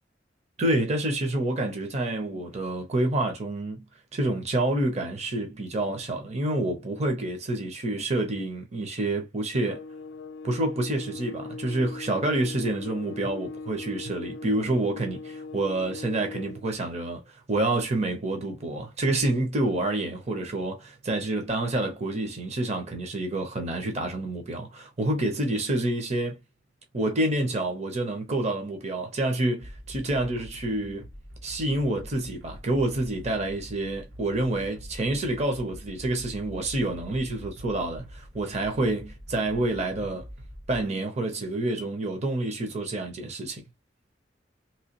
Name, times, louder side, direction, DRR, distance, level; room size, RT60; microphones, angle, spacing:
voice 1, 0.6-3.8 4.1-9.8 10.4-17.2 17.5-26.4 26.9-31.0 31.4-40.3 40.7-43.6, right 2 dB, 40° right, 0.8 m, -28 dB
sound 1, 9.6-16.7, left 3 dB, 70° left, 0.3 m, -40 dB
sound 2, 29.6-40.8, equal, 65° right, 0.9 m, -44 dB
3.2 x 3.1 x 2.9 m
head